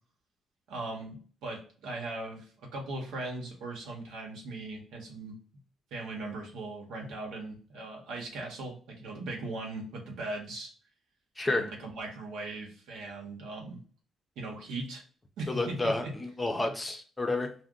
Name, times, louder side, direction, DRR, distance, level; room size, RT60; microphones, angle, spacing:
voice 1, 0.7-5.3 5.9-10.7 11.5-13.8 14.4-15.0 15.4-16.1, right 2 dB, 90° right, 0 dB, 1.0 m, -39 dB
voice 2, 11.4-11.7 15.5-17.5, left 2 dB, 15° left, 4 dB, 0.5 m, -30 dB
2.5 x 2.1 x 3.6 m, 0.43 s
cardioid pair, 110°, 0 cm